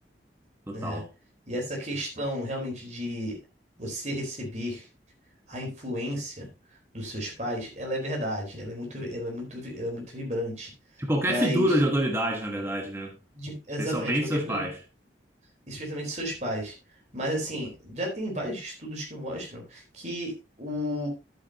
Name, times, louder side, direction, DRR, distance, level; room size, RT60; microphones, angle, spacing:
voice 1, 0.7-1.1 11.0-13.1 13.8-14.8, equal, 15° right, 2 dB, 1.3 m, -27 dB
voice 2, 1.5-3.4 3.8-4.9 5.5-6.5 6.9-10.7 11.2-11.7 13.3-14.7 15.7-16.7 17.1-21.1, equal, 40° right, 0 dB, 4.2 m, -33 dB
11.0 x 8.9 x 2.9 m, 0.28 s
head